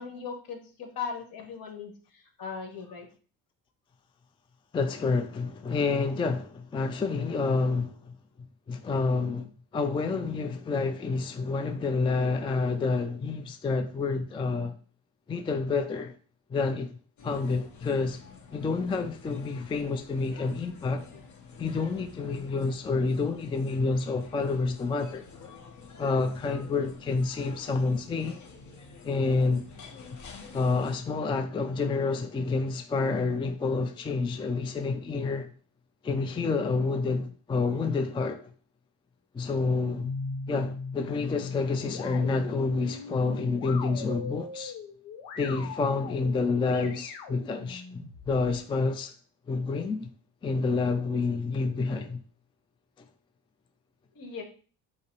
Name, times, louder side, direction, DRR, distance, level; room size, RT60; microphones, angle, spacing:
voice 1, 0.0-3.1 21.7-21.9 54.1-54.4, left 6 dB, 65° left, 1.3 m, -38 dB
voice 2, 4.7-8.2 8.7-14.8 15.3-16.1 16.5-17.0 17.2-18.2 18.5-21.0 21.6-25.3 26.0-28.4 29.0-29.6 30.5-35.5 36.0-38.5 39.3-40.1 40.5-44.7 45.4-49.1 49.5-50.1 50.4-52.2, left 4 dB, 15° left, 0.3 m, -28 dB
sound 1, 17.2-31.0, left 4 dB, 50° left, 1.0 m, -49 dB
sound 2, 40.0-48.6, left 4 dB, 90° left, 0.8 m, -40 dB
5.6 x 2.0 x 4.4 m
cardioid pair, 95°, 37 cm